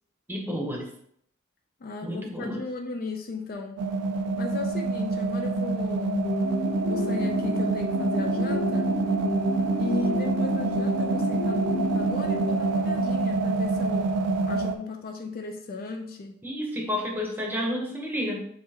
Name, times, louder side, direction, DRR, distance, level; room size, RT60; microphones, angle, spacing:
voice 1, 0.3-0.9 2.0-2.6 16.4-18.4, equal, 10° right, 0 dB, 0.8 m, -30 dB
voice 2, 1.8-3.8 4.4-6.3 6.9-9.0 9.8-14.1 14.5-16.4, left 3 dB, 40° left, 3 dB, 0.4 m, -36 dB
sound 1, 3.8-14.8, right 2 dB, 80° right, 0.4 m, -26 dB
sound 2, 6.1-13.2, left 1 dB, 85° left, 1.5 m, -33 dB
6.8 x 2.8 x 2.8 m, 0.67 s
head